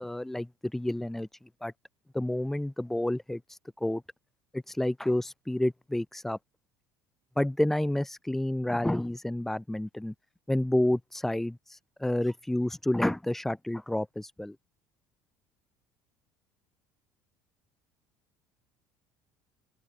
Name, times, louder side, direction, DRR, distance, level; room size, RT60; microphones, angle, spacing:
voice 1, 0.0-1.7 2.1-4.0 4.5-6.4 7.4-10.1 10.5-14.6, left 1 dB, 5° left, 2.0 m, -30 dB
open air
cardioid pair, 160°, 8 cm